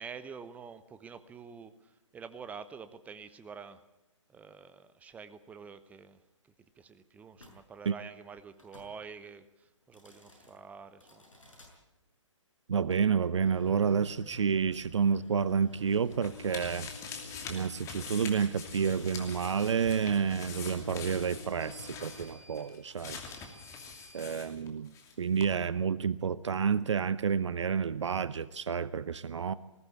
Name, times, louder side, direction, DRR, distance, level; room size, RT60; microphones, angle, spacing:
voice 1, 0.0-1.7 2.1-3.8 4.3-6.2 6.8-9.5 9.9-11.5, right 6 dB, 10° right, 13 dB, 0.9 m, -47 dB
sound 1, 7.4-7.6 8.5-8.9 9.8-10.5 11.0-11.7 13.3-24.3, left 3 dB, 80° left, 6.8 m, -50 dB
voice 2, 12.7-16.9 17.5-23.2 24.1-24.9 25.2-29.5, right 6 dB, 65° right, 17 dB, 0.7 m, -29 dB
sound 2, 15.5-25.1 25.4-25.5, left 5 dB, 20° left, 2.8 m, -45 dB
20.0 x 16.0 x 8.6 m, 0.92 s
figure-of-eight pair, 135°, 16 cm